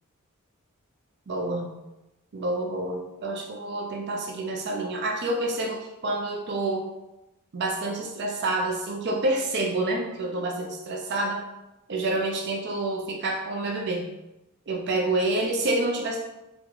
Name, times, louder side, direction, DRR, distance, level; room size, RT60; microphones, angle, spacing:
voice 1, 1.3-1.7 2.3-6.9 7.5-11.4 11.9-14.1 14.7-16.2, right 2 dB, 50° right, 0 dB, 0.5 m, -28 dB
3.8 x 2.3 x 2.9 m, 0.96 s
head